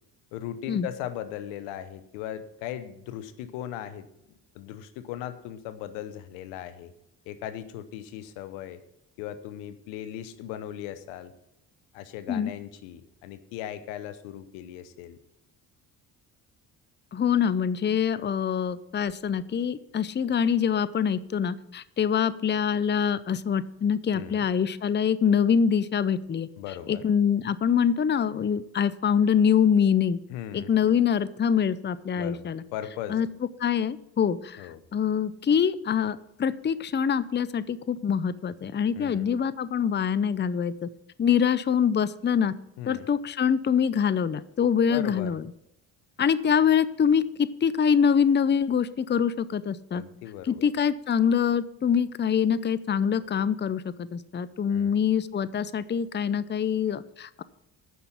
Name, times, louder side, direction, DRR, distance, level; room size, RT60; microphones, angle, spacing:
voice 1, 0.3-4.1 4.5-6.9 7.3-8.8 9.2-11.3 11.9-15.2 24.1-24.5 26.6-27.0 30.3-30.7 32.1-33.2 34.6-34.8 38.9-39.3 42.8-43.1 44.9-45.4 49.9-50.7 54.7-55.0, left 11 dB, 90° left, 13 dB, 0.8 m, -38 dB
voice 2, 17.1-26.5 26.9-30.2 30.5-32.6 33.1-33.3 33.6-40.9 41.2-42.5 42.9-45.4 46.2-50.0 50.4-57.4, left 7 dB, 25° left, 17 dB, 0.6 m, -24 dB
9.4 x 6.0 x 8.5 m, 0.80 s
supercardioid pair, 60°, 45 cm